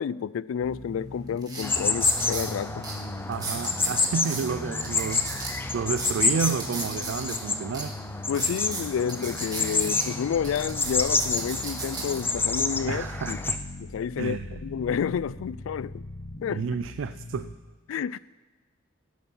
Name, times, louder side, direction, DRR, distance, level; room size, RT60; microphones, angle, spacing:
voice 1, 0.0-2.8 8.3-13.4 13.8-16.0 16.4-16.6 17.9-18.2, left 7 dB, 85° left, 0.3 m, -30 dB
sound 1, 0.6-17.5, left 2 dB, 65° left, 1.0 m, -40 dB
sound 2, 0.7-0.8 1.4-2.5 2.8-2.9 3.3-4.4 4.8-7.4 7.7-7.8 8.3-10.1 10.4-12.2 12.8-13.1, right 3 dB, 20° right, 2.1 m, -35 dB
sound 3, 1.6-13.6, left 3 dB, 10° left, 0.4 m, -29 dB
voice 2, 3.3-7.9 12.9-13.6 14.2-14.6 16.5-17.5, right 6 dB, 75° right, 0.4 m, -31 dB
15.5 x 8.7 x 5.5 m
head